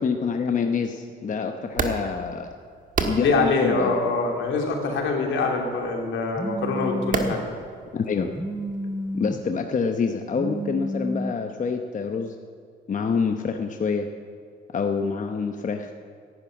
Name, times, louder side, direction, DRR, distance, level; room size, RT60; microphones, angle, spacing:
voice 1, 0.0-2.5 3.0-4.0 7.9-8.3 9.1-12.3 12.9-14.1 14.7-15.9, left 5 dB, 40° left, 5 dB, 0.9 m, -26 dB
sound 1, 1.6-9.5, right 4 dB, 40° right, 1.8 m, -34 dB
voice 2, 3.2-7.4, left 3 dB, 75° left, 1 dB, 2.8 m, -24 dB
Telephone, 6.3-7.4 8.3-9.4 10.3-11.3, equal, 5° right, 1.1 m, -30 dB
11.0 x 11.0 x 9.1 m, 2.2 s
cardioid pair, 90°, 20 cm